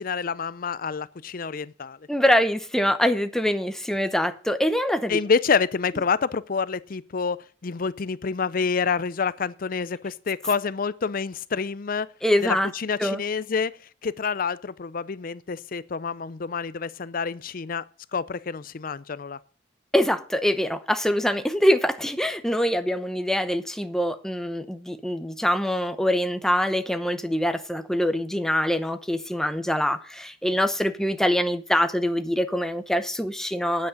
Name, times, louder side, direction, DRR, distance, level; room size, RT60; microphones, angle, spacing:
voice 1, 0.0-2.0 5.1-12.1 12.4-13.7 14.0-17.8 18.1-19.4, left 5 dB, 50° left, 0.5 m, -27 dB
voice 2, 2.1-5.2 12.2-12.7 13.0-13.2 19.9-33.9, equal, 5° left, 0.7 m, -24 dB
9.6 x 8.3 x 6.3 m
head